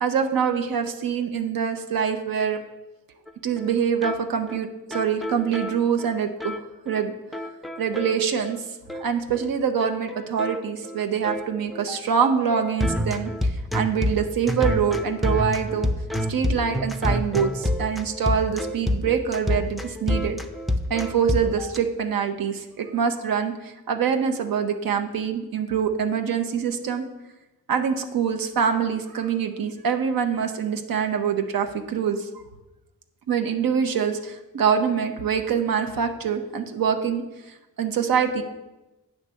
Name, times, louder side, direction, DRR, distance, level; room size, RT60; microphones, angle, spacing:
voice 1, 0.0-2.6 3.4-6.6 6.9-7.1 7.8-8.6 9.0-13.3 13.7-15.9 16.3-20.4 20.9-27.1 27.7-32.3 33.3-37.2 37.8-38.4, right 7 dB, 75° right, 5 dB, 0.7 m, -25 dB
sound 1, 3.3-3.4 3.6-3.7 4.0-4.2 4.5-4.6 4.9-6.6 6.9-7.0 7.3-8.6 8.9-9.1 9.3-9.5 9.8-21.8, left 1 dB, ahead, 0.3 m, -28 dB
9.5 x 3.3 x 6.2 m, 1.0 s
wide cardioid pair, 150°, 35 cm